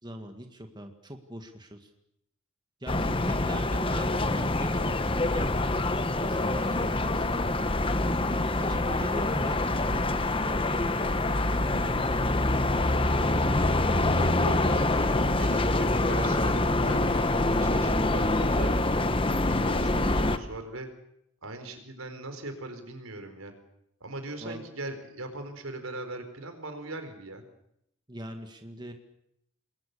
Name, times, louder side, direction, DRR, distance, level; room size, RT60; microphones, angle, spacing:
voice 1, 0.0-1.9 2.8-5.0 5.3-7.4 8.5-13.0 15.9-16.4 24.4-24.6 28.1-28.9, right 1 dB, 20° right, 5 dB, 1.9 m, -41 dB
sound 1, 2.9-20.4, left 2 dB, 25° left, 1.2 m, -25 dB
voice 2, 13.0-13.4 14.1-18.7 19.5-20.9 21.4-23.5 24.0-27.4, right 2 dB, 80° right, 7 dB, 4.4 m, -39 dB
28.5 x 21.5 x 6.9 m, 0.76 s
head